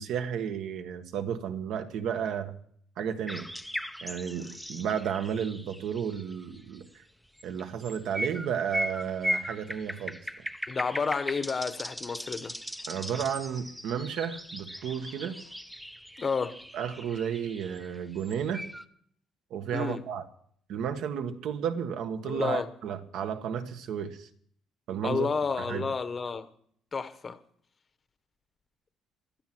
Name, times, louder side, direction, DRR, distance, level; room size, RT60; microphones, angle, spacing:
voice 1, 0.0-2.5 3.0-3.5 4.0-7.0 7.4-10.5 12.9-15.4 16.7-18.7 19.5-20.3 20.7-24.3 24.9-25.3 25.6-25.9, right 8 dB, 65° right, 1.5 m, -33 dB
sound 1, 3.3-6.8 7.4-18.8, equal, ahead, 0.7 m, -38 dB
voice 2, 10.7-12.6 16.2-16.6 19.7-20.0 22.2-22.7 25.0-26.5 26.9-27.4, left 5 dB, 25° left, 1.0 m, -30 dB
17.5 x 12.5 x 6.1 m
cardioid pair, 160°, 0 cm